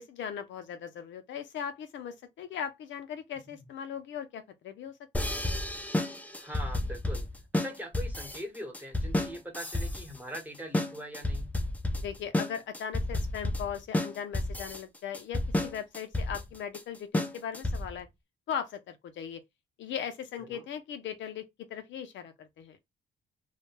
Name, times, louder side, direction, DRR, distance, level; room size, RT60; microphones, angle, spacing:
voice 1, 0.0-5.3 12.0-18.1 18.5-19.4 19.8-22.8, left 8 dB, 70° left, 0.5 m, -39 dB
sound 1, 5.1-18.0, left 1 dB, 10° left, 0.4 m, -31 dB
voice 2, 6.4-7.3 7.5-11.5 20.5-20.6, equal, 10° right, 1.0 m, -42 dB
2.2 x 2.1 x 3.1 m
cardioid pair, 90°, 20 cm